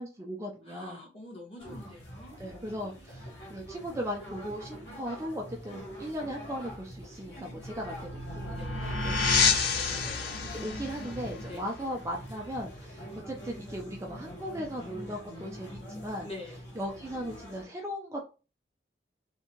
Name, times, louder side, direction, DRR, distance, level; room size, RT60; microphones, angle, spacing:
voice 1, 0.0-1.0 2.4-8.6 9.0-9.2 9.9-10.1 10.5-16.3 16.8-18.3, equal, 15° right, 0 dB, 0.4 m, -38 dB
voice 2, 0.6-2.4 8.5-9.0 11.5-11.7 16.2-16.6, left 2 dB, 30° left, -1 dB, 1.0 m, -45 dB
sound 1, 1.6-17.6, equal, 70° left, 1.1 m, -44 dB
sound 2, 7.4-12.8, left 4 dB, 55° left, 0.5 m, -30 dB
2.7 x 2.2 x 2.8 m, 0.32 s
head